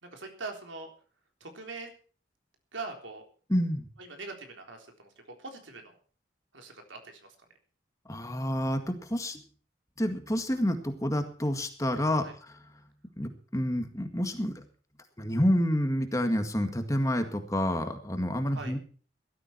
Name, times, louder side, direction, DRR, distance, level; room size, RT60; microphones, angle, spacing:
voice 1, 0.0-0.9 1.4-1.9 2.7-3.2 4.0-5.1 5.4-6.0 6.5-7.4 12.2-12.3 18.5-18.8, right 3 dB, 85° right, 4 dB, 3.8 m, -42 dB
voice 2, 3.5-3.9 8.1-9.4 10.0-12.6 13.2-14.6 15.2-18.8, equal, 15° left, 6 dB, 1.9 m, -29 dB
17.0 x 13.0 x 4.6 m, 0.40 s
head